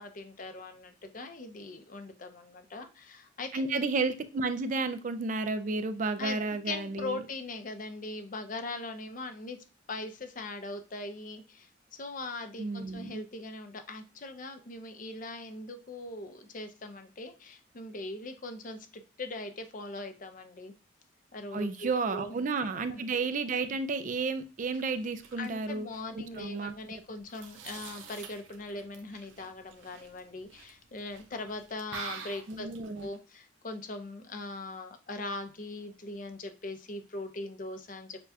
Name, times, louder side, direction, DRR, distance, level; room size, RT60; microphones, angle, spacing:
voice 1, 0.0-3.8 6.2-6.4 6.7-9.6 9.9-18.8 19.2-20.7 21.3-22.3 22.9-23.0 25.4-32.7 33.0-38.2, left 2 dB, 45° left, 7 dB, 0.6 m, -40 dB
voice 2, 3.5-7.2 12.6-13.2 21.5-25.9 26.4-26.7 32.5-33.1, right 3 dB, 40° right, 10 dB, 0.4 m, -32 dB
sound 1, 24.5-33.2, right 6 dB, 80° right, 0.8 m, -48 dB
6.8 x 2.3 x 2.7 m, 0.33 s
head